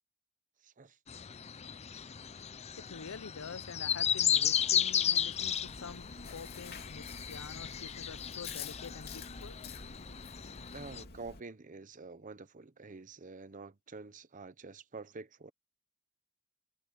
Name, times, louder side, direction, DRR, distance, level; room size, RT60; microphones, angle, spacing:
voice 1, 0.6-1.0 10.7-15.5, right 3 dB, 35° right, 0.8 m, -48 dB
sound 1, 1.1-11.0, left 9 dB, 30° left, 0.5 m, -34 dB
voice 2, 2.8-9.6, left 5 dB, 70° left, 0.7 m, -47 dB
Chewing mastication, 5.6-11.4, left 5 dB, 45° left, 2.8 m, -48 dB
head